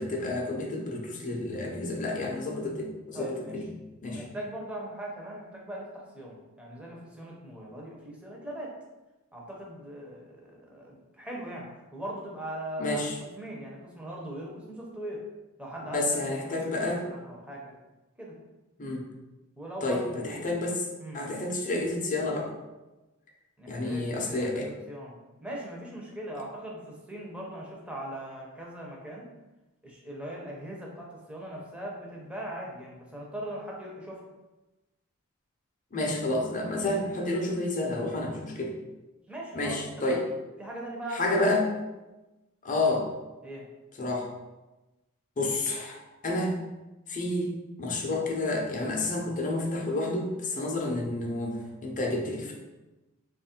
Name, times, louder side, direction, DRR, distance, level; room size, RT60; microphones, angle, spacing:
voice 1, 0.0-3.7 4.0-4.2 12.8-13.2 15.8-17.0 18.8-19.0 19.8-20.9 21.1-22.5 23.7-24.7 35.9-38.8 39.5-40.2 41.1-41.7 42.6-43.1 44.0-44.3 45.4-46.6 47.1-47.5 47.8-52.5, left 2 dB, 35° left, 0 dB, 0.6 m, -30 dB
voice 2, 3.1-3.6 4.1-8.7 9.3-15.2 15.6-17.7 18.2-18.4 19.6-20.6 21.0-21.2 23.6-29.3 29.8-34.2 39.3-39.8 40.1-40.2 40.6-41.5 43.4-43.7, right 1 dB, 5° right, -2 dB, 0.7 m, -40 dB
3.0 x 2.4 x 4.3 m, 1.1 s
head